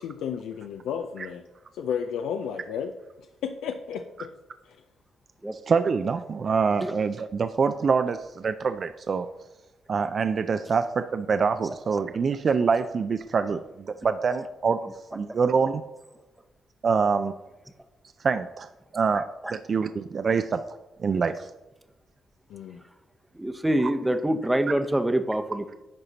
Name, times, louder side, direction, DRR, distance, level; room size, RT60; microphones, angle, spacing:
voice 1, 0.0-1.4 1.7-2.9 3.2-4.3 4.6-4.8 22.5-22.8, left 7 dB, 85° left, 5 dB, 0.4 m, -33 dB
voice 2, 5.7-9.3 9.9-14.8 15.1-15.8 16.8-17.3 18.2-20.6 21.0-21.5, right 5 dB, 50° right, 10 dB, 0.3 m, -25 dB
voice 3, 23.3-25.7, right 1 dB, 10° right, 8 dB, 0.7 m, -25 dB
10.5 x 4.3 x 4.0 m, 1.0 s
cardioid pair, 70°, 0 cm